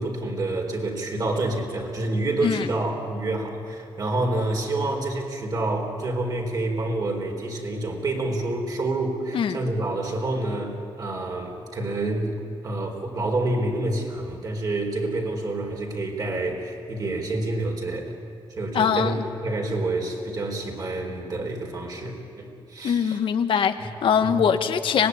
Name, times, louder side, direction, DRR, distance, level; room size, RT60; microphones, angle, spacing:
voice 1, 0.0-12.4 12.6-18.1 18.6-19.1 19.4-23.2 23.8-23.9 24.2-24.4, right 2 dB, 45° right, 2 dB, 4.2 m, -28 dB
voice 2, 18.7-19.2 22.8-25.1, left 7 dB, 75° left, 8 dB, 1.3 m, -22 dB
25.0 x 19.5 x 9.7 m, 2.8 s
wide cardioid pair, 140°, 9 cm